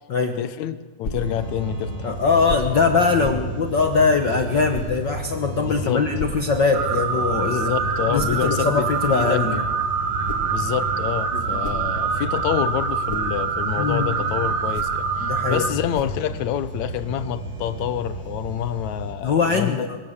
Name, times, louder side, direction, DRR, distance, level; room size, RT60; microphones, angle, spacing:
voice 1, 0.4-2.1 3.2-3.3 5.6-6.1 7.5-9.5 10.5-19.9, left 11 dB, 75° left, 14 dB, 2.0 m, -27 dB
sound 1, 1.0-1.3 2.5-2.8 3.2-3.5 4.7-5.0 6.2-6.5 8.2-8.4 10.0-10.6 11.4-12.3 12.8-13.4 14.6-15.1 15.9-16.3, left 2 dB, 35° left, 2.0 m, -34 dB
sound 2, 1.1-19.2, right 2 dB, 90° right, 4.7 m, -32 dB
voice 2, 2.0-7.7 8.1-9.6 11.3-11.6 13.8-14.1 15.2-15.6 19.2-20.0, left 4 dB, 55° left, 6 dB, 1.2 m, -21 dB
sound 3, 6.7-15.7, right 6 dB, 55° right, 2.4 m, -25 dB
25.0 x 16.5 x 7.2 m, 1.4 s
omnidirectional pair, 3.6 m